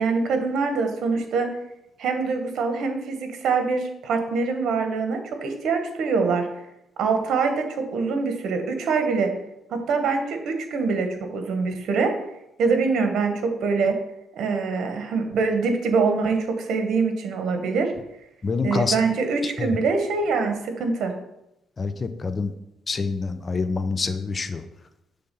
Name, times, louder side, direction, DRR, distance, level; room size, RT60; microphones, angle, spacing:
voice 1, 0.0-1.5 2.0-6.5 7.0-9.3 9.7-12.1 12.6-14.0 14.3-17.9 18.6-21.1, right 4 dB, 70° right, 5 dB, 1.1 m, -24 dB
voice 2, 18.4-18.9 21.8-21.9 22.2-22.5 22.9-24.6, left 4 dB, 35° left, 10 dB, 0.6 m, -25 dB
6.9 x 3.5 x 5.3 m, 0.85 s
cardioid pair, 90°, 0 cm